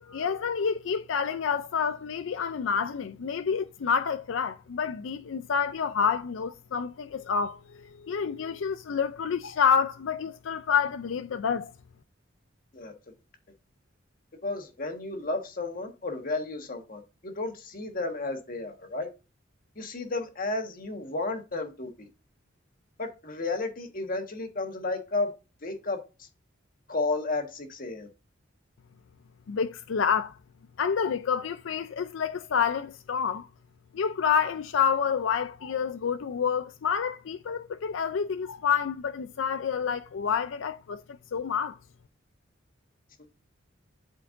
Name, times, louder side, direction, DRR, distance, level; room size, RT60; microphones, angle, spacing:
voice 1, 0.0-11.7 29.5-30.4 30.8-33.5 33.9-41.0 41.3-41.8, left 6 dB, 80° left, 0.4 m, -28 dB
voice 2, 14.4-19.1 19.7-22.1 23.0-25.3 25.6-26.3 26.9-28.1, left 3 dB, 45° left, 1.5 m, -32 dB
12.0 x 4.5 x 2.6 m
head